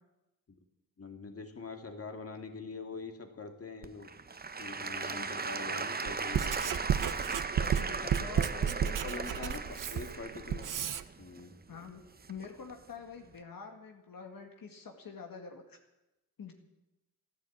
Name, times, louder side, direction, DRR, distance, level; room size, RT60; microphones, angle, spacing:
voice 1, 1.0-4.1 4.6-6.8 9.0-9.6 9.9-10.7 11.2-11.6, left 4 dB, 40° left, 5 dB, 2.2 m, -44 dB
Applause / Crowd, 3.8-12.7 13.3-13.4, right 4 dB, 25° right, 0.8 m, -38 dB
voice 2, 5.0-5.4 7.6-9.6 11.7-15.8 16.4-16.5, left 5 dB, 75° left, 3 dB, 1.9 m, -46 dB
Writing, 6.1-11.0, right 8 dB, 65° right, 0.7 m, -32 dB
14.5 x 11.5 x 8.6 m, 0.97 s
cardioid pair, 85°, 35 cm